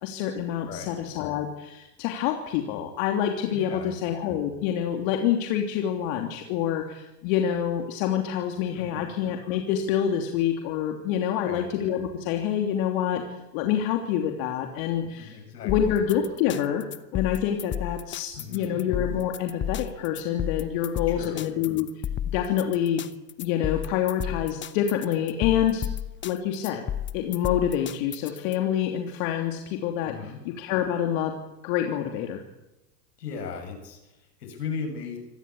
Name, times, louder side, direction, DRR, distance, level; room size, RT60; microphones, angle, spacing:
voice 1, 0.0-15.4 15.6-16.8 17.1-21.9 22.3-23.1 23.4-25.8 26.2-26.8 27.1-30.1 30.4-31.4 31.6-32.4, left 9 dB, 55° left, 3 dB, 3.2 m, -27 dB
voice 2, 3.5-3.9 8.7-9.1 11.4-11.7 15.0-16.0 18.4-18.8 21.1-21.5 30.0-30.4 33.2-35.2, left 5 dB, 75° left, 6 dB, 7.7 m, -37 dB
sound 1, 15.7-28.5, left 10 dB, 25° left, 1.0 m, -33 dB
26.0 x 18.5 x 8.8 m, 0.98 s
hypercardioid pair, 100°, 48 cm